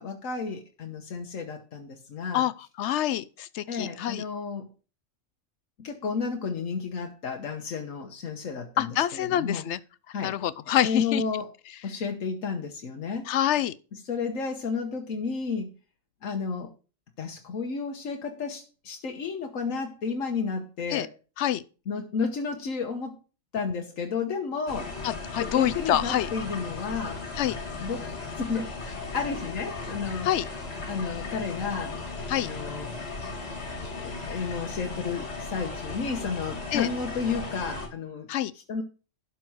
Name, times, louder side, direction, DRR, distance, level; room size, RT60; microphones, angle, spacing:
voice 1, 0.0-2.5 3.7-4.7 5.8-9.6 10.1-10.3 10.8-11.5 11.8-13.3 14.1-15.7 16.2-16.7 17.2-21.1 21.9-23.2 23.5-24.9 25.4-27.2 27.8-30.3 30.9-32.0 32.3-32.9 33.9-38.3 38.7-38.8, left 5 dB, 90° left, 1.5 m, -32 dB
voice 2, 2.8-4.2 8.8-9.8 10.2-11.2 13.3-13.7 20.9-21.1 21.4-21.6 25.0-26.3 27.4-27.6 30.2-30.4 32.3-32.5 36.7-36.9 38.3-38.5, left 12 dB, 70° left, 0.9 m, -26 dB
sound 1, 24.7-37.9, left 3 dB, 55° left, 2.4 m, -36 dB
12.0 x 4.6 x 6.2 m
omnidirectional pair, 1.3 m